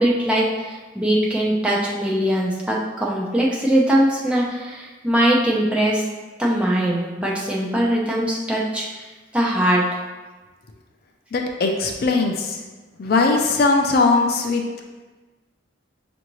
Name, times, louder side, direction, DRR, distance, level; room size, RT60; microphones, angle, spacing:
voice 1, 0.0-6.0 6.4-9.1 9.3-9.8, right 1 dB, 5° right, -4 dB, 0.5 m, -21 dB
voice 2, 11.3-12.6 13.0-14.6, left 3 dB, 55° left, 2 dB, 0.4 m, -19 dB
5.5 x 2.6 x 3.0 m, 1.2 s
head